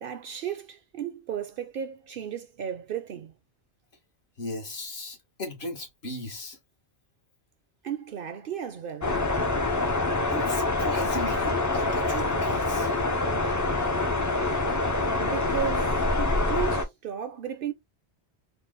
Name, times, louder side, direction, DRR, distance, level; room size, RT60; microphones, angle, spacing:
voice 1, 0.0-3.3 7.8-9.2 15.2-16.0 16.5-17.7, right 9 dB, 60° right, 0.7 m, -34 dB
voice 2, 4.4-6.6 10.3-12.9, left 1 dB, 70° left, 1.5 m, -36 dB
sound 1, 9.0-16.8, left 2 dB, 25° left, 0.4 m, -26 dB
3.9 x 2.0 x 3.7 m
omnidirectional pair, 1.1 m